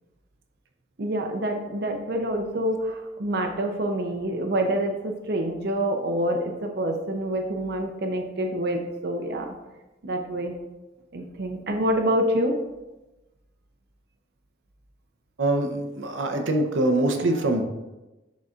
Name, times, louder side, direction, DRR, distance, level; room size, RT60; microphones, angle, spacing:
voice 1, 1.0-9.6 10.0-10.6 11.1-12.6 17.1-17.6, right 1 dB, 55° right, 3 dB, 0.6 m, -27 dB
voice 2, 15.4-17.6, right 2 dB, 90° right, 5 dB, 0.7 m, -24 dB
10.5 x 4.1 x 2.4 m, 1.0 s
head